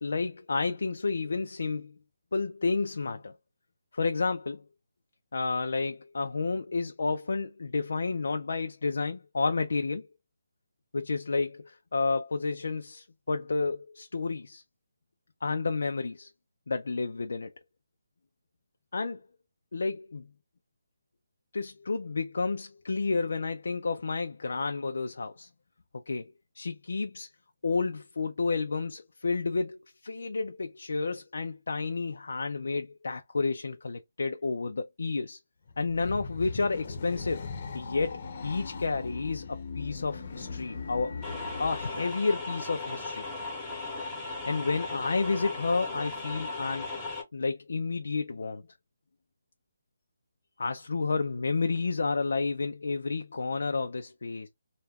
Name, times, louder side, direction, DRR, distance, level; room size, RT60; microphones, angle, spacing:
voice 1, 0.0-1.9 2.3-3.3 3.9-4.6 5.3-10.1 10.9-14.6 15.4-16.3 16.7-17.5 18.9-19.2 19.7-20.3 21.5-25.5 25.9-27.3 27.6-35.4 35.8-37.4 37.7-41.2 41.6-43.2 44.5-46.9 47.3-48.7 50.6-54.5, left 4 dB, 70° left, 0.4 m, -31 dB
sound 1, 35.7-41.9, left 4 dB, 35° left, 0.7 m, -39 dB
sound 2, 41.2-47.2, left 3 dB, 5° left, 0.8 m, -37 dB
2.3 x 2.1 x 3.4 m
hypercardioid pair, 170°, 0 cm